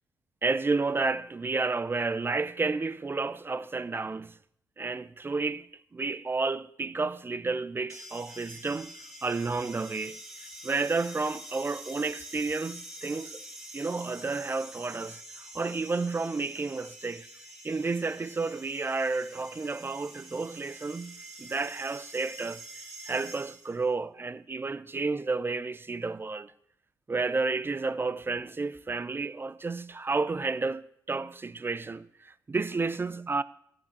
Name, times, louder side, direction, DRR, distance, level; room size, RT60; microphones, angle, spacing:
voice 1, 0.4-4.4 4.8-5.7 5.9-8.9 9.2-10.2 10.6-13.4 13.7-17.3 17.6-22.6 23.1-26.5 27.1-33.4, right 3 dB, 25° right, 0.5 m, -31 dB
sound 1, 7.9-23.9, right 1 dB, 5° right, 2.5 m, -46 dB
16.5 x 8.8 x 2.9 m
hypercardioid pair, 40°, 9 cm